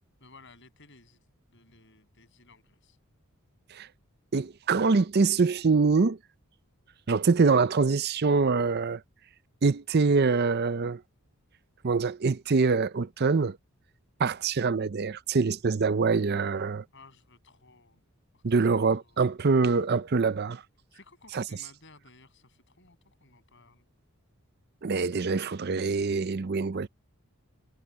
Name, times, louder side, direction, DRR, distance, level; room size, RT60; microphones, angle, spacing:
voice 1, 0.2-3.0 16.9-18.0 18.3-19.3 20.9-23.9, left 3 dB, 55° left, 7.0 m, -57 dB
voice 2, 4.3-6.2 7.1-9.0 9.6-11.0 11.8-13.6 14.2-16.8 18.4-20.6 21.3-21.4 24.8-26.9, right 4 dB, 45° right, 0.5 m, -24 dB
head